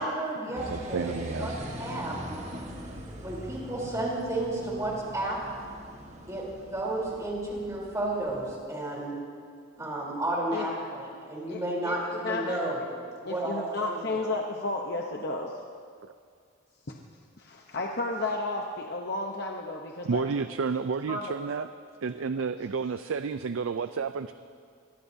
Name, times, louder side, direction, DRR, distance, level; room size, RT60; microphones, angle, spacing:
voice 1, 0.0-2.2 3.2-5.4 6.3-9.2 9.8-12.8 13.2-14.3, right 1 dB, 15° right, -4 dB, 3.6 m, -32 dB
sound 1, 0.5-8.6, equal, 30° right, 1.5 m, -42 dB
voice 2, 0.7-1.6 20.0-21.7 22.0-24.3, right 5 dB, 65° right, 11 dB, 0.4 m, -31 dB
voice 3, 11.5-11.9 12.2-12.6 13.2-15.5 17.4-20.3 21.1-21.3, left 2 dB, 50° left, 0 dB, 0.9 m, -32 dB
24.0 x 20.0 x 2.7 m, 2.2 s
head